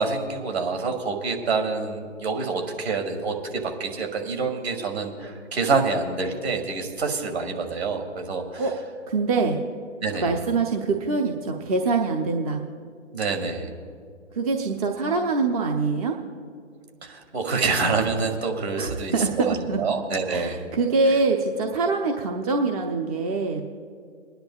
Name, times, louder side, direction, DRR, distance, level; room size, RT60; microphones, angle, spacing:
voice 1, 0.0-8.7 10.0-10.3 13.1-13.7 17.0-19.1 19.5-20.6, right 4 dB, 55° right, 3 dB, 2.1 m, -27 dB
voice 2, 9.1-9.6 10.1-12.6 14.3-16.2 18.8-19.8 20.3-23.6, right 3 dB, 30° right, 2 dB, 0.7 m, -24 dB
28.5 x 10.5 x 2.3 m, 2.2 s
hypercardioid pair, 145°, 37 cm